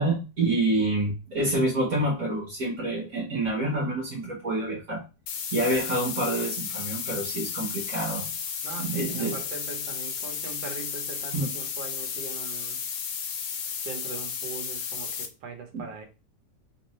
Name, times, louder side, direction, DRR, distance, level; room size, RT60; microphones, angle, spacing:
voice 1, 0.0-5.0 5.5-8.3 8.8-9.4 11.3-11.6 15.7-15.8, right 1 dB, 55° right, 1.5 m, -27 dB
sound 1, 5.3-15.3, left 7 dB, 80° left, 1.3 m, -33 dB
voice 2, 8.6-12.8 13.8-16.0, right 5 dB, 85° right, 1.6 m, -40 dB
3.7 x 2.6 x 3.1 m
omnidirectional pair, 1.9 m